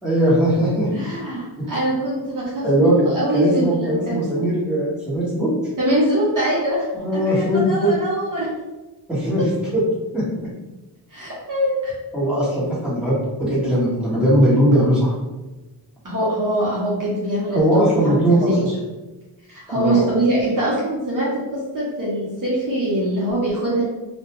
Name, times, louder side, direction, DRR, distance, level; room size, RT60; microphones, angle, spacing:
voice 1, 0.0-0.9 1.6-1.7 2.6-2.9 3.3-5.5 6.9-7.9 9.1-9.4 9.7-9.8 10.1-10.2 12.1-15.1 17.5-18.5 19.7-20.1, equal, ahead, -9 dB, 1.1 m, -19 dB
voice 2, 0.9-4.3 5.8-6.8 7.1-8.5 9.4-9.5 11.1-11.9 16.0-18.2 18.4-18.6 19.5-23.8, right 1 dB, 45° right, -6 dB, 0.7 m, -23 dB
2.3 x 2.2 x 2.9 m, 1.1 s
wide cardioid pair, 110°, 45 cm